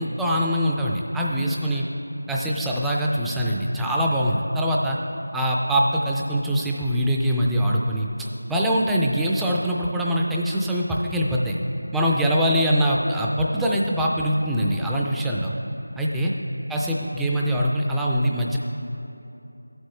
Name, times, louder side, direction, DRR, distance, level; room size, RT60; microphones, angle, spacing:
voice 1, 0.0-1.9 2.3-5.0 5.3-11.6 11.9-15.5 16.0-16.3 16.7-18.6, equal, ahead, -4 dB, 0.3 m, -23 dB
13.5 x 7.9 x 3.2 m, 2.9 s
figure-of-eight pair, 170°, 0 cm